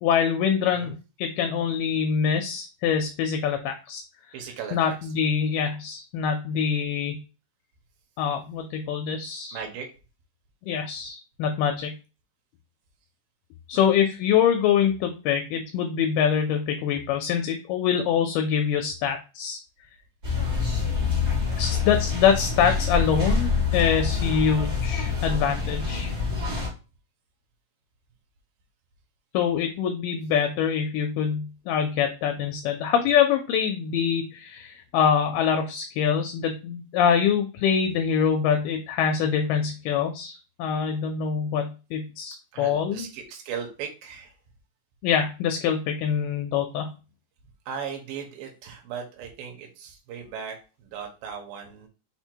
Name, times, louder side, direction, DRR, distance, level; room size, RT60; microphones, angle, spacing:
voice 1, 0.0-4.0 4.7-7.2 8.2-9.6 10.6-11.9 13.7-19.6 21.6-26.1 29.3-43.1 45.0-46.9, left 7 dB, 80° left, 5 dB, 2.1 m, -24 dB
voice 2, 4.3-5.4 9.5-9.9 13.7-14.0 21.5-21.8 42.5-44.3 47.7-51.9, right 7 dB, 80° right, 2 dB, 2.5 m, -38 dB
sound 1, 20.2-26.7, left 5 dB, 60° right, 0.6 m, -26 dB
5.6 x 2.1 x 4.4 m, 0.32 s
omnidirectional pair, 4.0 m